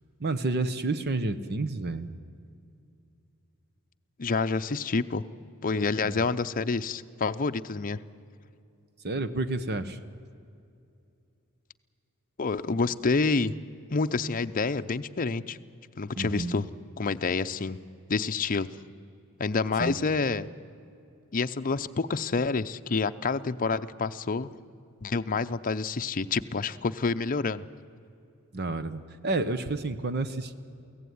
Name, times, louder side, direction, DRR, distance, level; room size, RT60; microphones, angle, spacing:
voice 1, 0.2-2.1 6.0-6.2 9.0-10.0 16.2-16.6 19.8-20.0 28.5-30.5, right 2 dB, 50° right, 12 dB, 1.0 m, -30 dB
voice 2, 4.2-5.2 5.6-8.0 12.4-13.5 13.9-15.6 16.0-16.7 17.0-17.8 18.1-18.8 19.4-20.5 21.3-24.5 25.0-27.7, left 4 dB, 40° left, 9 dB, 0.6 m, -28 dB
23.5 x 16.5 x 9.5 m, 2.5 s
head